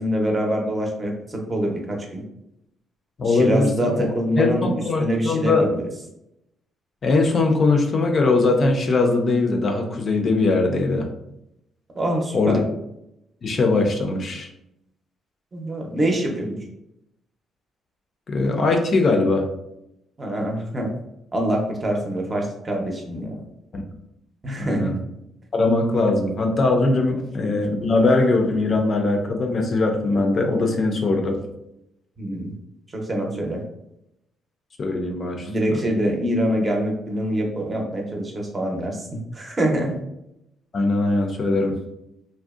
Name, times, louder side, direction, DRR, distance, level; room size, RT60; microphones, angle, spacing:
voice 1, 0.0-2.2 3.2-4.7 5.0-5.8 11.9-12.6 15.5-16.6 20.2-20.9 21.3-23.4 24.4-24.9 32.2-32.5 32.9-33.6 35.5-40.0, right 1 dB, 30° right, 0 dB, 0.6 m, -25 dB
voice 2, 3.2-4.1 4.4-5.7 7.0-11.1 12.3-12.6 13.4-14.5 18.3-19.5 23.7-23.8 24.6-25.0 25.5-31.4 34.8-35.5 40.7-41.8, left 3 dB, 45° left, 3 dB, 0.4 m, -21 dB
2.6 x 2.0 x 2.3 m, 0.82 s
cardioid pair, 90°, 0 cm